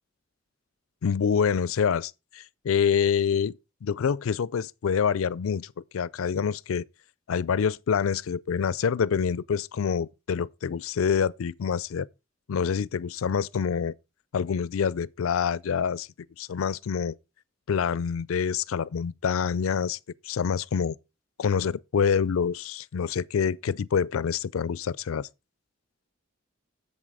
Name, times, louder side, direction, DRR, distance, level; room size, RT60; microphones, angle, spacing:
voice 1, 1.0-6.9 7.3-12.1 12.5-13.9 14.3-16.1 16.4-17.2 17.7-20.0 20.2-21.0 21.4-25.3, left 7 dB, 85° left, 0.4 m, -26 dB
7.4 x 7.4 x 4.8 m
head